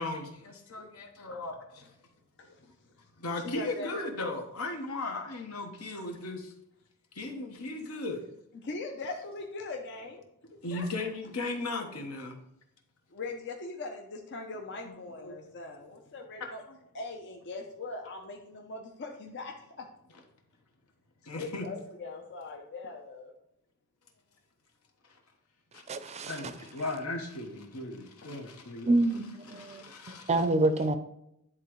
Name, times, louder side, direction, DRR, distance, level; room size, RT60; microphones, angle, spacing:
voice 1, 0.0-1.9 2.6-2.7 3.2-6.5 7.1-8.2 10.6-12.4 14.8-14.9 15.2-15.5 16.7-16.8 21.2-21.7 25.7-28.9 29.5-30.4, left 2 dB, 80° left, 1.2 m, -37 dB
voice 2, 3.4-4.0 8.6-10.2 10.5-10.9 13.1-16.6 16.9-19.9 21.3-23.3 28.2-28.4, left 3 dB, 55° left, 0.6 m, -41 dB
voice 3, 25.9-26.5 28.9-30.9, right 2 dB, 30° right, 0.5 m, -28 dB
10.5 x 3.7 x 3.1 m
head